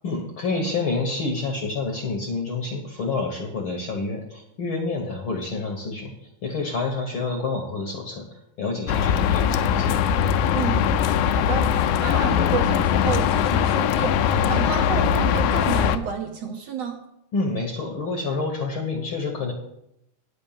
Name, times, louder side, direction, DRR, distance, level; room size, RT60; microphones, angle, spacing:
voice 1, 0.0-6.1 6.4-8.3 8.6-10.1 17.3-19.5, left 3 dB, 60° left, 1 dB, 1.4 m, -28 dB
sound 1, 8.9-16.0, left 8 dB, 80° left, 2.0 m, -21 dB
voice 2, 10.5-10.8 11.2-17.0, right 7 dB, 70° right, 2 dB, 1.6 m, -30 dB
9.5 x 5.2 x 7.2 m, 0.82 s
omnidirectional pair, 3.6 m